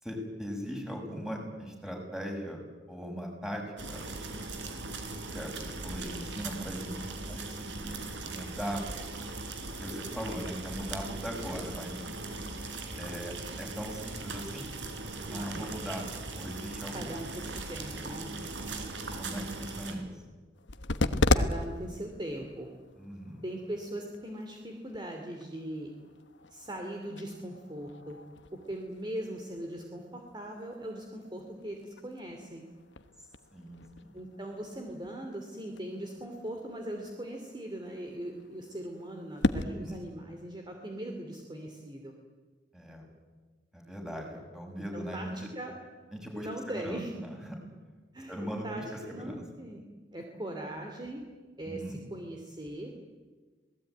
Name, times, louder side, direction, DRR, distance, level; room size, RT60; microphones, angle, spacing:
voice 1, 0.0-2.6 2.9-4.1 5.3-5.5 5.8-8.0 8.3-8.8 9.8-12.0 13.0-14.7 15.3-16.1 16.4-17.1 17.5-17.6 19.2-20.1 23.0-23.4 33.5-34.1 39.6-40.0 42.7-43.1 43.7-45.3 46.1-46.5 46.8-47.4 48.3-49.4 51.6-52.0, equal, 5° right, 1 dB, 6.5 m, -39 dB
sound 1, 3.8-19.9, right 3 dB, 75° right, 3.9 m, -39 dB
voice 2, 15.3-15.7 16.9-18.3 21.3-22.7 23.4-25.9 26.5-28.2 28.5-32.6 34.1-42.1 44.9-45.7 46.3-47.1 48.1-49.8 50.1-51.3 51.6-52.9, right 1 dB, 25° right, 2 dB, 2.7 m, -40 dB
sound 2, 20.5-39.6, left 2 dB, 75° left, 1.2 m, -37 dB
27.0 x 19.5 x 9.4 m, 1.4 s
head